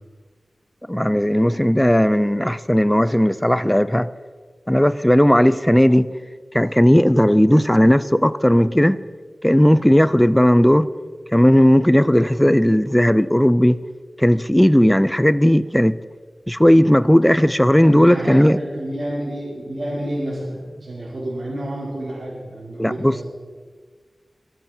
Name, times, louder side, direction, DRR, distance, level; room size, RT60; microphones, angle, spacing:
voice 1, 0.9-4.1 4.7-6.1 6.5-9.0 9.4-10.9 11.3-13.8 14.2-16.0 16.5-18.6 22.8-23.2, equal, 5° left, 16 dB, 0.4 m, -15 dB
voice 2, 17.8-23.2, right 1 dB, 60° right, -6 dB, 4.8 m, -29 dB
23.0 x 7.8 x 6.0 m, 1.5 s
wide cardioid pair, 90°, 0 cm